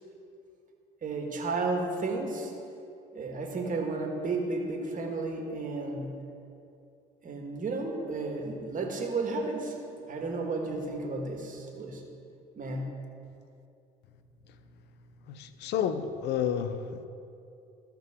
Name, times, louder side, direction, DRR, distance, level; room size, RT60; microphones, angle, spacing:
voice 1, 1.0-2.5 3.1-6.2 7.2-9.8 10.1-12.0 12.6-13.0, right 3 dB, 45° right, 2 dB, 1.8 m, -33 dB
voice 2, 15.3-17.1, left 8 dB, 65° left, 11 dB, 0.7 m, -30 dB
14.5 x 5.7 x 3.8 m, 2.6 s
hypercardioid pair, 60°, 19 cm